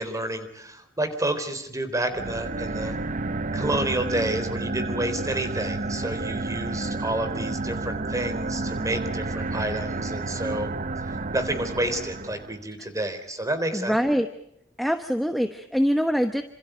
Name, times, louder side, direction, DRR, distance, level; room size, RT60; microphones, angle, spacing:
voice 1, 0.0-3.0 3.5-10.7 11.0-14.0, right 1 dB, 15° right, 9 dB, 3.9 m, -30 dB
sound 1, 2.1-12.6, right 2 dB, 40° right, 0.8 m, -30 dB
voice 2, 13.7-14.3 14.8-16.4, equal, ahead, 6 dB, 1.1 m, -24 dB
28.0 x 26.5 x 5.2 m, 0.78 s
head